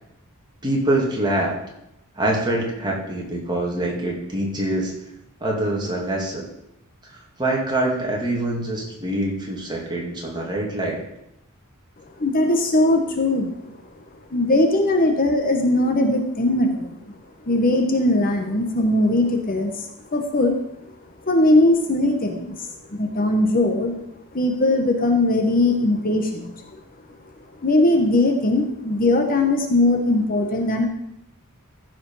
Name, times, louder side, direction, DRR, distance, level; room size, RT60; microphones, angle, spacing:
voice 1, 0.6-1.5 2.2-4.9 5.4-6.4 7.0-11.0, right 1 dB, 20° right, -2 dB, 2.5 m, -25 dB
voice 2, 12.2-13.6 14.3-17.0 17.5-20.6 21.2-23.9 24.3-26.8 27.6-30.9, left 2 dB, 40° left, 4 dB, 1.0 m, -20 dB
14.5 x 5.0 x 5.5 m, 0.82 s
head